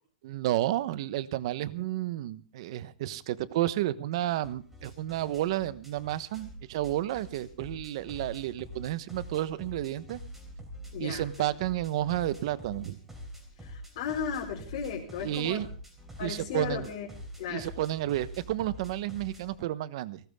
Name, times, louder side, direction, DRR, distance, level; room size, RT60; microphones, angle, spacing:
voice 1, 0.2-10.2 11.0-13.0 15.2-15.7 16.2-16.9 17.5-20.2, right 14 dB, 45° right, 15 dB, 1.1 m, -31 dB
sound 1, 4.4-19.6, equal, 5° right, 3.8 m, -46 dB
voice 2, 10.9-11.3 13.6-15.6 16.2-17.1 17.4-17.7, left 7 dB, 45° left, -3 dB, 4.5 m, -35 dB
19.0 x 18.5 x 3.7 m, 0.40 s
supercardioid pair, 175°, 4 cm